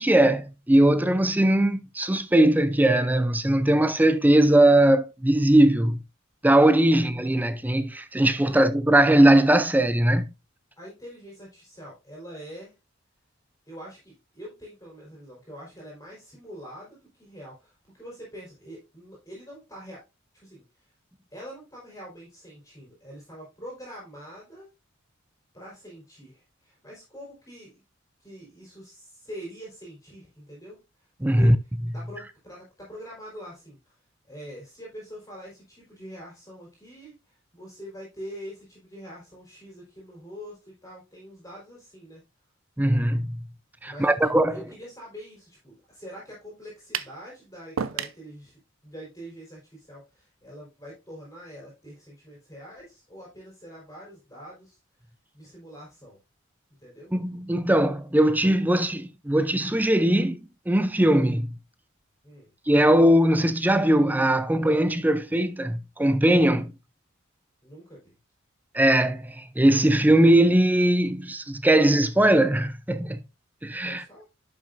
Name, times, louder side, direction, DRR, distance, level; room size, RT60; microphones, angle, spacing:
voice 1, 0.0-6.0 6.4-10.3 31.2-31.6 42.8-43.4 43.8-44.6 57.1-60.4 60.7-61.6 62.7-66.7 68.7-73.2 73.6-74.0, right 1 dB, 10° right, 0.5 m, -20 dB
voice 2, 10.8-12.7 13.7-20.0 20.3-20.9 21.3-24.7 25.5-27.8 28.2-31.6 31.9-33.9 34.3-42.2 43.9-54.8 55.3-56.2 56.8-57.1 62.2-62.5 67.6-68.2 73.8-74.2, equal, 15° left, 4.0 m, -44 dB
sound 1, 46.9-47.2 47.8-48.2, right 7 dB, 75° right, 0.6 m, -30 dB
11.0 x 6.1 x 2.5 m
head